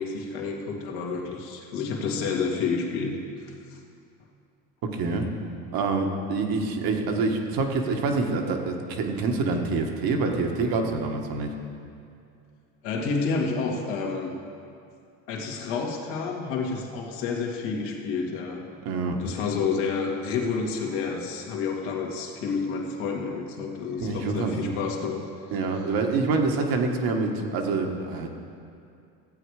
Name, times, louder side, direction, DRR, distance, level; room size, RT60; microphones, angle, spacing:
voice 1, 0.0-3.8 12.8-14.3 15.3-18.7 19.2-25.3, left 5 dB, 75° left, 0 dB, 2.1 m, -29 dB
voice 2, 4.8-5.3 5.7-11.5 18.8-19.2 24.0-24.7 25.5-28.3, right 3 dB, 55° right, 3 dB, 1.6 m, -26 dB
15.0 x 8.4 x 4.9 m, 2.5 s
supercardioid pair, 95°, 41 cm